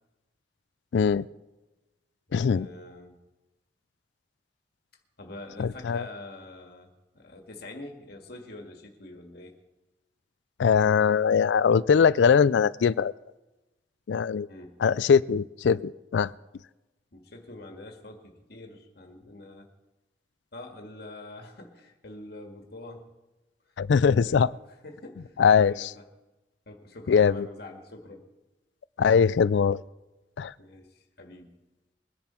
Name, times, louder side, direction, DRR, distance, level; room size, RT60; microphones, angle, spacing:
voice 1, 0.9-1.2 2.3-2.7 5.6-6.0 10.6-13.1 14.1-14.5 14.8-16.3 23.8-24.5 25.4-25.9 27.1-27.5 29.0-29.8 30.4-30.5, left 6 dB, 90° left, 20 dB, 0.4 m, -21 dB
voice 2, 2.3-3.2 5.2-6.9 7.1-9.6 14.5-14.8 17.1-19.7 20.5-23.1 23.7-23.8 24.2-24.5 24.8-26.1 26.7-28.3 30.6-31.6, left 2 dB, 65° left, 3 dB, 1.7 m, -45 dB
21.5 x 10.5 x 4.4 m, 1.1 s
head